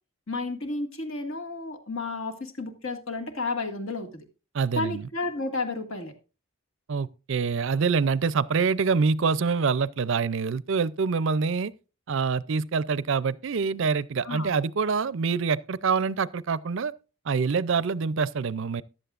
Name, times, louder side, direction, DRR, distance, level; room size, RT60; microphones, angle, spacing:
voice 1, 0.3-4.2 4.8-6.1 14.2-14.5, left 3 dB, 65° left, 2.0 m, -32 dB
voice 2, 4.5-5.1 6.9-11.7 12.1-16.9 17.2-18.8, right 5 dB, 60° right, 0.5 m, -25 dB
15.0 x 11.0 x 2.5 m
head